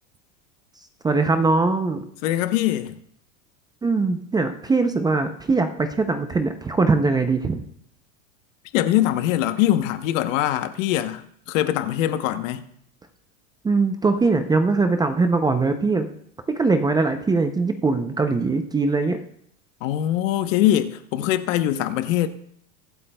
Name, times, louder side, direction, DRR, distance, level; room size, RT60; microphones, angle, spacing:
voice 1, 1.0-2.1 3.8-7.6 13.6-16.1 16.5-19.2, right 3 dB, 10° right, 0.5 m, -21 dB
voice 2, 2.2-2.9 8.7-12.6 19.8-22.3, left 13 dB, 70° left, 1.0 m, -22 dB
22.5 x 8.2 x 2.2 m
supercardioid pair, 135°, 40 cm